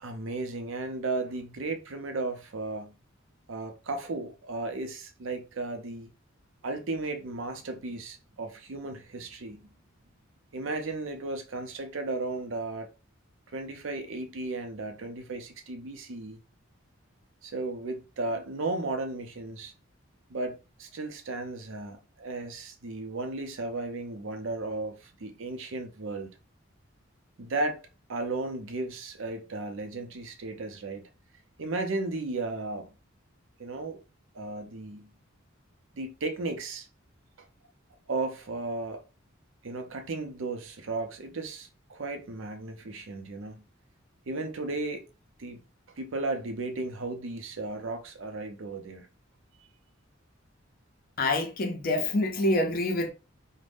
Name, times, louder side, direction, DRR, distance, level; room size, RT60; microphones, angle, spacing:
voice 1, 0.0-2.9 3.5-6.1 6.6-9.6 10.5-12.9 13.5-16.4 17.4-19.7 20.3-26.3 27.4-27.8 28.1-31.1 31.6-32.9 33.6-34.0 34.3-35.1 35.9-36.9 38.1-39.0 39.6-43.6 44.3-45.0 45.4-45.6 45.9-49.1, right 2 dB, 70° right, 0.6 m, -35 dB
voice 2, 51.2-53.1, left 2 dB, 45° left, 0.5 m, -26 dB
2.5 x 2.1 x 3.4 m
head